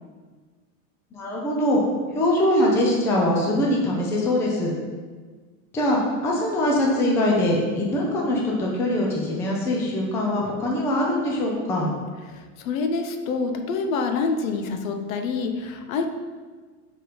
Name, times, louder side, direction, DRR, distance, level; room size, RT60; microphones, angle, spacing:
voice 1, 1.1-1.8 2.1-4.7 5.7-11.9, left 1 dB, 5° left, -2 dB, 0.4 m, -22 dB
voice 2, 12.3-16.1, left 4 dB, 70° left, 6 dB, 0.9 m, -27 dB
6.6 x 3.9 x 5.1 m, 1.4 s
supercardioid pair, 160°, 42 cm